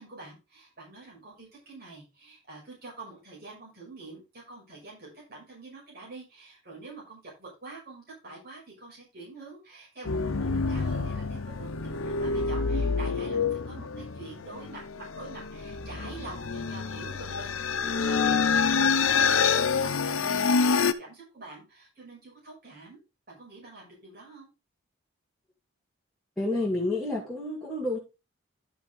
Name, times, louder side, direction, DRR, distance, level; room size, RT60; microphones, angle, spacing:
voice 1, 0.0-23.0 23.3-24.5, right 2 dB, 45° right, -4 dB, 5.8 m, -46 dB
sound 1, 10.0-20.9, left 5 dB, 85° left, 0.8 m, -27 dB
voice 2, 26.4-28.0, left 2 dB, ahead, -7 dB, 2.4 m, -29 dB
11.5 x 5.7 x 3.8 m, 0.27 s
head